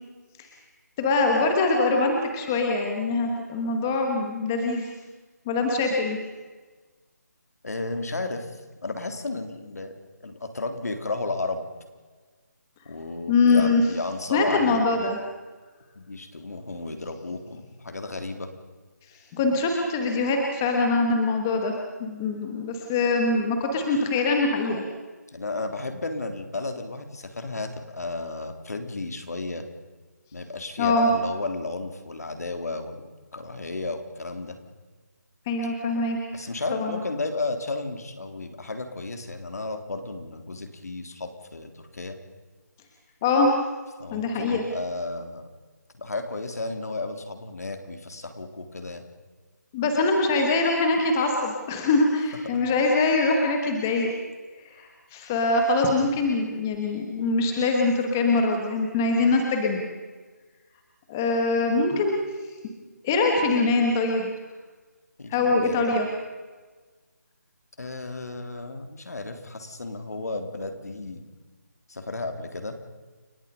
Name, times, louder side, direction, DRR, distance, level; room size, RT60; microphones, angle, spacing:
voice 1, 1.0-4.9 5.5-6.2 13.3-13.8 14.3-15.2 19.3-21.7 22.0-24.8 30.8-31.1 35.5-36.2 36.7-37.0 43.2-43.5 44.1-44.6 49.7-54.1 54.7-59.9 61.1-62.2 63.0-64.3 65.3-66.1, left 3 dB, 10° left, 3 dB, 1.1 m, -23 dB
voice 2, 7.6-9.9 10.2-11.6 12.8-15.1 15.9-18.5 25.3-29.6 30.3-33.1 33.3-34.6 36.3-42.2 44.0-45.5 45.9-49.0 52.5-52.6 65.2-65.8 67.8-71.3 71.9-72.7, left 3 dB, 60° left, 7 dB, 3.4 m, -33 dB
29.5 x 17.5 x 5.4 m, 1.3 s
figure-of-eight pair, 180°, 10 cm